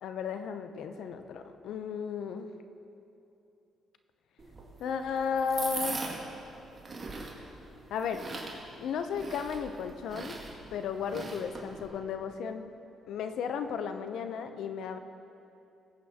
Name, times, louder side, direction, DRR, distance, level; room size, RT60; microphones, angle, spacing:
voice 1, 0.0-2.5 4.8-6.1 7.9-8.3 8.8-10.4 10.7-12.7 13.1-15.0, left 6 dB, 75° left, 8 dB, 0.6 m, -34 dB
sound 1, 4.4-11.9, right 3 dB, 40° right, 2.1 m, -41 dB
21.0 x 8.6 x 2.8 m, 2.8 s
cardioid pair, 90°, 0 cm